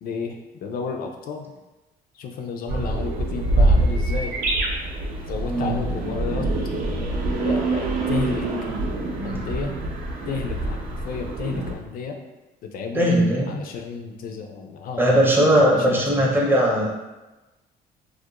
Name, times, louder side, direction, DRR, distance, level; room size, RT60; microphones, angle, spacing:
voice 1, 0.0-1.4 2.1-4.3 5.3-6.5 7.4-8.4 9.2-9.8 10.3-12.2 12.6-13.2 13.5-16.3, left 5 dB, 60° left, 3 dB, 0.4 m, -32 dB
sound 1, 2.7-11.7, right 2 dB, 55° right, 0.5 m, -25 dB
voice 2, 12.9-13.6 15.0-16.8, right 1 dB, 10° right, -2 dB, 0.5 m, -19 dB
2.4 x 2.0 x 2.8 m, 1.1 s
cardioid pair, 110°, 17 cm